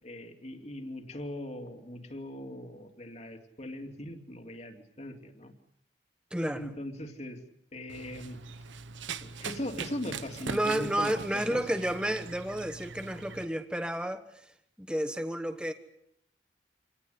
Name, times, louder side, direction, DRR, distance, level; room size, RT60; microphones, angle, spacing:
voice 1, 0.0-5.5 6.5-7.4 7.7-8.4 9.2-11.6, left 1 dB, 35° left, 4 dB, 2.9 m, -40 dB
voice 2, 6.3-6.7 10.5-14.2 14.8-15.7, right 1 dB, 5° right, 8 dB, 1.3 m, -31 dB
Run, 7.9-13.4, right 5 dB, 85° right, 1.1 m, -42 dB
27.0 x 18.5 x 9.6 m, 0.76 s
head